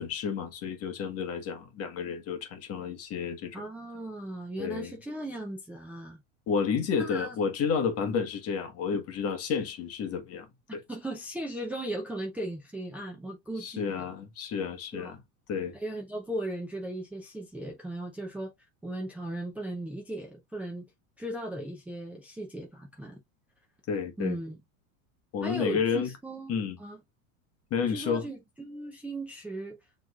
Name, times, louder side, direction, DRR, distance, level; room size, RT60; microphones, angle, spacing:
voice 1, 0.0-3.6 4.6-4.9 6.5-10.5 13.6-15.2 15.5-15.7 23.9-24.4 25.3-26.1 26.5-26.8 27.7-28.2, left 6 dB, 35° left, 1.2 m, -31 dB
voice 2, 3.5-6.2 6.9-7.4 10.9-14.1 14.9-15.1 15.7-18.5 18.8-20.9 21.2-23.2 24.2-24.6 25.4-27.0 27.9-29.8, right 1 dB, 5° right, 0.6 m, -37 dB
6.1 x 3.2 x 2.3 m
supercardioid pair, 135°, 41 cm